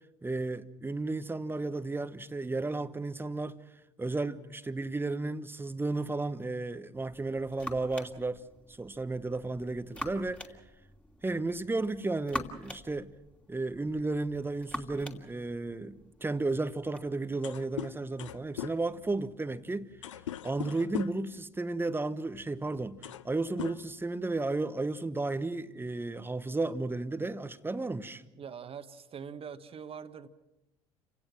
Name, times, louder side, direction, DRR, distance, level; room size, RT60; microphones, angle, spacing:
voice 1, 0.2-3.6 4.0-8.4 8.7-10.4 11.2-13.1 13.5-19.9 20.4-23.0 23.2-28.2, right 3 dB, 15° right, 1.2 m, -33 dB
sound 1, 6.9-17.1, equal, 5° left, 2.7 m, -45 dB
sound 2, 17.3-21.3 22.3-22.5 22.8-23.3 23.6-24.4, left 11 dB, 80° left, 0.7 m, -40 dB
voice 2, 28.4-30.3, right 7 dB, 35° right, 1.6 m, -43 dB
29.5 x 17.0 x 6.1 m
hypercardioid pair, 65°, 16 cm